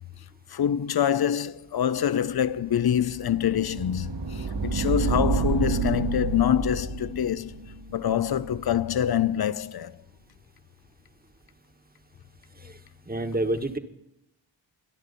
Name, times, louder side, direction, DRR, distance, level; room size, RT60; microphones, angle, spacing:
voice 1, 0.5-7.6 7.9-10.0, left 9 dB, 50° left, 0.7 m, -25 dB
sound 1, 2.5-9.3, right 5 dB, 60° right, 2.2 m, -30 dB
voice 2, 13.1-13.8, right 1 dB, 20° right, 1.5 m, -28 dB
25.0 x 10.5 x 4.2 m
cardioid pair, 45°, 48 cm